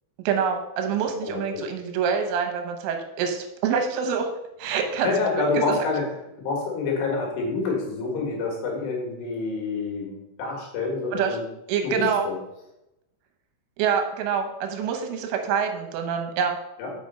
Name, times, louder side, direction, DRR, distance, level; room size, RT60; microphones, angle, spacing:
voice 1, 0.3-4.3 4.6-5.1 5.7-5.8 11.1-11.4 11.7-12.3 13.8-16.6, right 7 dB, 85° right, 5 dB, 3.5 m, -26 dB
voice 2, 1.2-1.7 5.0-6.1 6.4-11.4 11.8-12.4 16.8-16.9, left 3 dB, 65° left, -1 dB, 3.4 m, -27 dB
6.8 x 5.4 x 5.3 m, 0.88 s
omnidirectional pair, 5.6 m